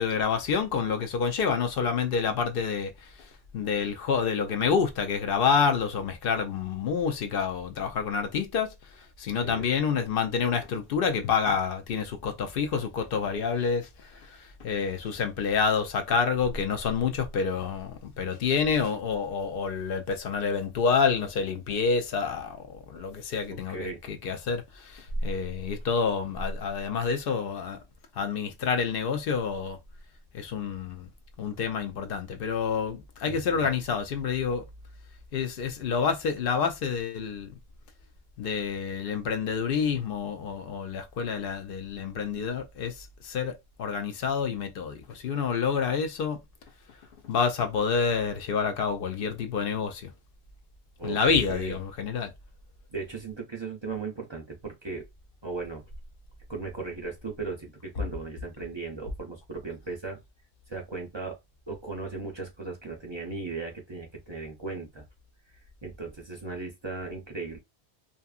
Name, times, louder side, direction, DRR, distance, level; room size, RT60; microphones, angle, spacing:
voice 1, 0.0-3.3 3.5-8.7 9.2-27.8 28.2-29.8 30.3-31.1 31.4-34.6 35.3-37.6 38.4-46.4 47.2-50.1 51.0-52.3, left 6 dB, 65° left, 0.7 m, -28 dB
voice 2, 23.7-24.0 33.3-33.7 51.0-51.2 51.5-51.8 52.9-55.0 55.4-55.8 56.5-60.2 60.7-61.4 61.7-65.0 65.8-67.6, right 4 dB, 40° right, 0.4 m, -37 dB
2.7 x 2.4 x 2.3 m
omnidirectional pair, 1.1 m